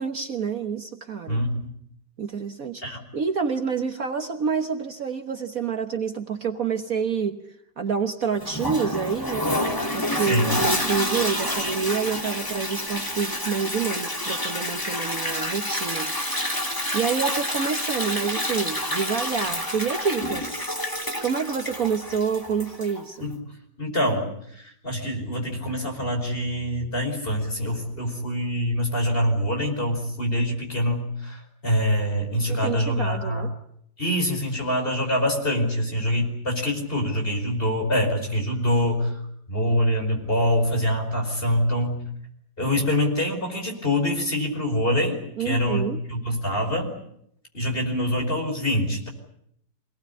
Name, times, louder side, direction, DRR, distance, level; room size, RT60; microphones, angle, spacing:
voice 1, 0.0-1.4 2.2-9.5 9.9-16.1 16.9-23.3 32.5-33.5 45.4-46.0, right 6 dB, 50° right, 6 dB, 1.6 m, -28 dB
voice 2, 1.3-1.7 2.8-3.0 10.2-10.5 23.2-23.3 23.8-24.3 24.5-33.4 34.0-39.2 39.5-42.0 42.6-46.9 47.5-49.1, equal, 30° left, 3 dB, 5.4 m, -25 dB
Toilet flush, 8.4-23.0, left 1 dB, 10° left, 2.6 m, -28 dB
25.5 x 19.0 x 9.8 m, 0.72 s
omnidirectional pair, 2.0 m